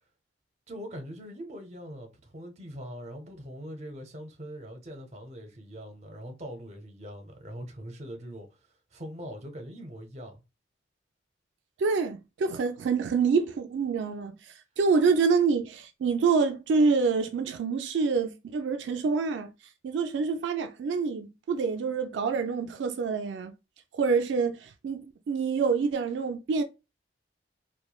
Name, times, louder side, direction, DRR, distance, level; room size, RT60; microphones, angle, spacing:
voice 1, 0.7-8.6 8.9-10.4, equal, 40° right, 0.6 m, -42 dB
voice 2, 11.8-19.5 19.8-23.5 23.9-25.0 25.3-26.6, right 5 dB, 85° right, 0.3 m, -26 dB
3.0 x 2.2 x 2.3 m
head